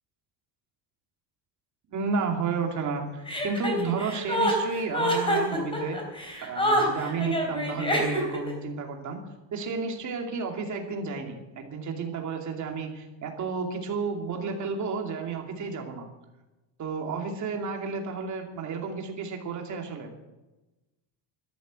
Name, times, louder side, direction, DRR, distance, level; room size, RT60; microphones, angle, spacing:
voice 1, 1.9-6.0 6.4-9.2 9.5-16.1 16.8-20.1, right 4 dB, 40° right, 3 dB, 2.6 m, -32 dB
Chuckle chortle, 3.3-8.5, equal, 10° left, 3.4 m, -26 dB
12.5 x 11.5 x 7.5 m, 1.1 s
cardioid pair, 165°, 46 cm